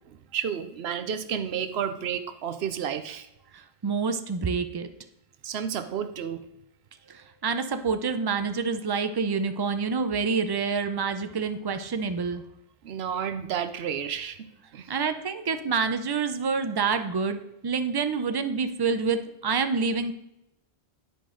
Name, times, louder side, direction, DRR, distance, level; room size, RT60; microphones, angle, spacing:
voice 1, 0.3-3.3 5.4-6.4 12.8-14.5 14.7-14.9, right 8 dB, 80° right, 10 dB, 0.9 m, -31 dB
voice 2, 3.5-4.9 7.1-12.4 14.9-20.1, right 5 dB, 35° right, 9 dB, 0.4 m, -27 dB
10.5 x 5.1 x 3.8 m, 0.85 s
omnidirectional pair, 1.1 m